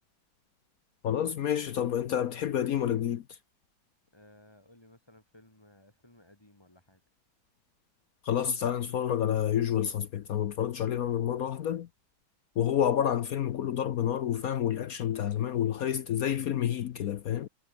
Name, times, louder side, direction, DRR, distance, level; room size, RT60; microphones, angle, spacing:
voice 1, 1.0-3.4 8.2-11.9 12.6-17.5, left 10 dB, 65° left, 0.9 m, -29 dB
voice 2, 4.1-7.0, left 1 dB, 10° left, 4.1 m, -58 dB
omnidirectional pair, 2.2 m